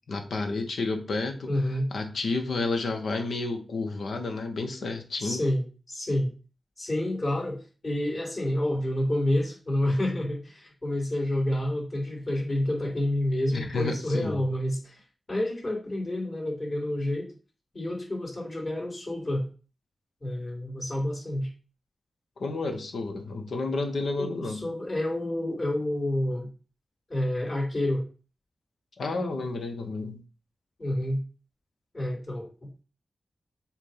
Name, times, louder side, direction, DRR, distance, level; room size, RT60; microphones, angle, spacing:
voice 1, 0.1-1.5 1.9-5.4 13.5-14.4 22.4-24.7 29.0-30.2, left 3 dB, 80° left, 4 dB, 1.2 m, -31 dB
voice 2, 1.5-1.9 5.2-6.3 6.8-15.0 15.3-17.3 17.7-19.4 20.2-21.5 24.2-26.5 27.1-28.0 30.8-31.2 31.9-32.8, left 1 dB, 40° left, -3 dB, 3.1 m, -29 dB
7.3 x 2.6 x 5.7 m, 0.36 s
cardioid pair, 70°, 0 cm